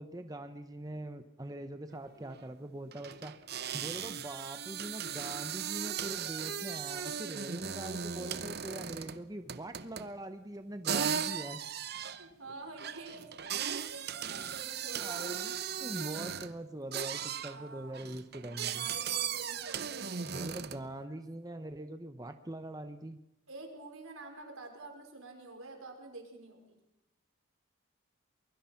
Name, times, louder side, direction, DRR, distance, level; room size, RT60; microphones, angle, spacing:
voice 1, 0.0-3.3 3.7-11.6 14.8-15.5 15.8-18.9 20.2-23.2, right 1 dB, 15° right, 8 dB, 0.9 m, -43 dB
sound 1, 1.9-2.0 2.2-2.4 2.9-9.2 9.5-10.2 10.8-16.6 16.9-17.6 17.9-20.9, right 8 dB, 50° right, 0.8 m, -37 dB
voice 2, 10.9-11.5 12.2-15.3 17.4-17.9 18.5-20.3 21.1-21.2 23.5-26.8, right 3 dB, 85° right, 3 dB, 4.9 m, -48 dB
23.0 x 22.0 x 5.8 m, 0.85 s
head